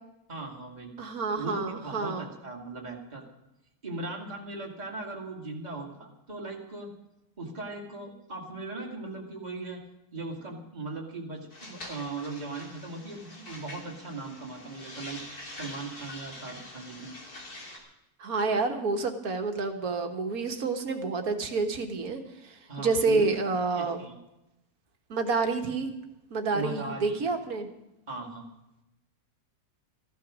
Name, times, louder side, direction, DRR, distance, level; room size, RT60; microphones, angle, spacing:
voice 1, 0.3-0.9 1.4-3.3 3.8-6.9 7.4-9.8 10.1-15.2 15.5-17.2 22.7-23.4 23.7-24.2 26.5-27.3 28.1-28.5, right 3 dB, 30° right, -1 dB, 2.2 m, -38 dB
voice 2, 1.0-2.3 18.2-24.0 25.1-25.9 26.3-27.7, right 4 dB, 70° right, 6 dB, 1.8 m, -29 dB
sound 1, 11.5-17.8, left 1 dB, 80° left, 3.5 m, -45 dB
14.5 x 12.0 x 6.2 m, 0.92 s
omnidirectional pair, 1.6 m